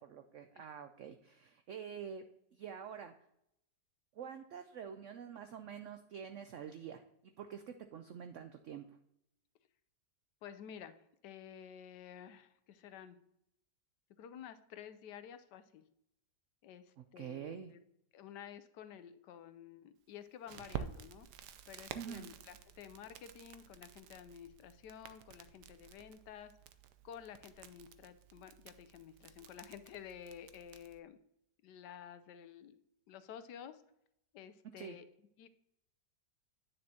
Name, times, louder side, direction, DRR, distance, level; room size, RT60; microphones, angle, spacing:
voice 1, 0.1-2.2 2.5-3.1 4.1-7.0 7.4-8.8 17.0-17.7 21.9-22.3 34.8-35.0, right 8 dB, 90° right, 8 dB, 0.6 m, -47 dB
voice 2, 10.4-10.9 11.2-13.2 14.2-15.8 16.6-17.8 18.1-21.3 21.7-26.5 27.0-31.2 31.6-32.8 33.1-33.8 34.3-35.0 35.4-35.5, left 9 dB, 80° left, 12 dB, 1.2 m, -52 dB
Crackle, 20.5-31.0, right 8 dB, 75° right, 1.2 m, -51 dB
9.6 x 6.6 x 2.8 m, 0.78 s
omnidirectional pair, 1.9 m